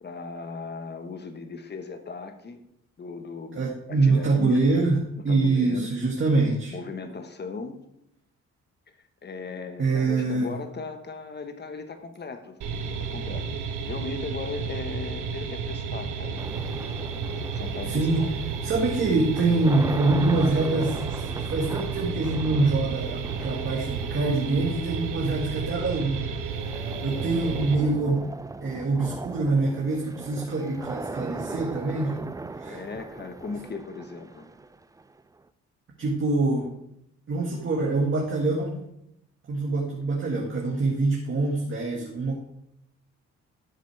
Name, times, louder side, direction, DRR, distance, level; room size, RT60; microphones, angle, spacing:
voice 1, 0.0-2.6 3.0-4.6 5.3-5.9 6.7-7.8 9.2-12.6 12.8-16.4 17.3-18.3 32.7-34.5, left 4 dB, 35° left, 8 dB, 1.3 m, -37 dB
voice 2, 3.5-6.8 9.8-10.5 17.9-18.3 18.6-26.2 27.0-28.3 28.6-32.2 32.6-32.8 36.0-36.7 37.3-38.8 39.5-42.3, right 3 dB, 40° right, -1 dB, 1.7 m, -25 dB
sound 1, 12.6-27.8, right 5 dB, 80° right, 1.1 m, -32 dB
sound 2, 16.4-35.4, right 3 dB, 10° right, 0.4 m, -39 dB
12.5 x 7.7 x 3.4 m, 0.79 s
cardioid pair, 90°, 30 cm